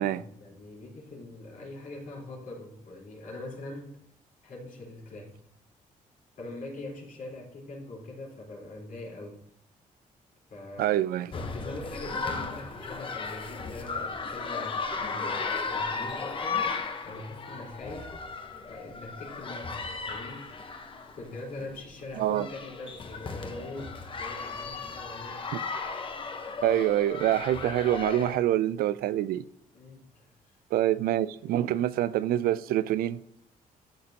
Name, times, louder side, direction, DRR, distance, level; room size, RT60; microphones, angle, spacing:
voice 1, 0.0-4.0 4.4-5.4 6.4-9.4 10.5-11.0 11.3-18.1 18.6-20.5 21.1-25.6 29.7-30.3 31.4-31.7, left 2 dB, 65° left, 4.1 m, -42 dB
voice 2, 10.8-11.3 22.2-22.5 26.6-29.4 30.7-33.2, right 12 dB, 90° right, 0.4 m, -26 dB
sound 1, 11.3-28.4, left 4 dB, 35° left, 1.1 m, -35 dB
13.0 x 6.7 x 2.9 m
cardioid pair, 115°, 15 cm